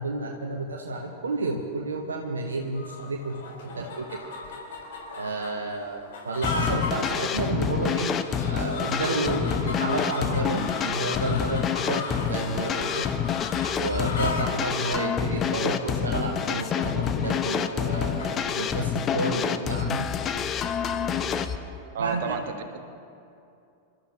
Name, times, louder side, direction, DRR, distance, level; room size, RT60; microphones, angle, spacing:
voice 1, 0.0-3.4 3.6-4.2 5.1-8.1 8.4-13.1 13.7-20.1 22.0-22.3, right 2 dB, 70° right, 2 dB, 1.0 m, -31 dB
sound 1, 2.7-18.3, left 4 dB, 55° left, 4.2 m, -37 dB
sound 2, 6.4-21.6, left 8 dB, 25° left, 0.7 m, -27 dB
voice 2, 21.9-22.9, right 6 dB, 55° right, 5 dB, 1.3 m, -31 dB
28.0 x 13.5 x 2.9 m, 2.6 s
figure-of-eight pair, 90°, 0 cm